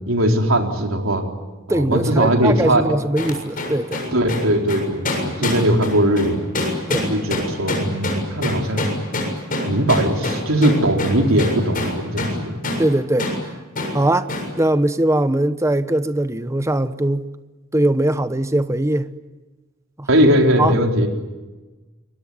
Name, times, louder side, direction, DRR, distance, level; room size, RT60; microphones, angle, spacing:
voice 1, 0.1-1.2 1.7-2.8 4.1-6.4 6.9-8.9 9.6-12.6 20.1-21.1, right 1 dB, 90° right, 4.3 m, -19 dB
voice 2, 1.7-4.0 5.4-5.5 6.9-7.1 12.8-13.3 13.9-17.3 17.7-19.1 20.0-20.1 20.6-20.8, right 1 dB, 15° right, 1.1 m, -21 dB
sound 1, 3.2-12.4 12.6-12.9 13.2-13.4 13.8-14.0 14.3-14.5, left 2 dB, 45° left, 7.2 m, -25 dB
27.0 x 22.0 x 9.6 m
head